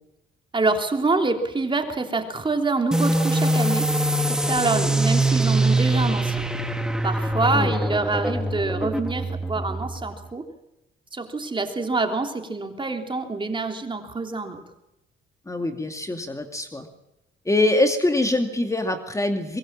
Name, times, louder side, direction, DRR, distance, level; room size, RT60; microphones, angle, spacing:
voice 1, 0.5-3.9 4.3-6.4 7.0-10.4 11.1-14.6, right 3 dB, 25° right, 4 dB, 3.3 m, -26 dB
sound 1, 2.9-10.2, right 1 dB, 5° right, 2.3 m, -23 dB
voice 2, 7.5-7.9 15.5-16.9 17.5-19.6, left 2 dB, 15° left, 6 dB, 2.3 m, -24 dB
24.0 x 22.0 x 7.5 m, 0.92 s
cardioid pair, 90°, 20 cm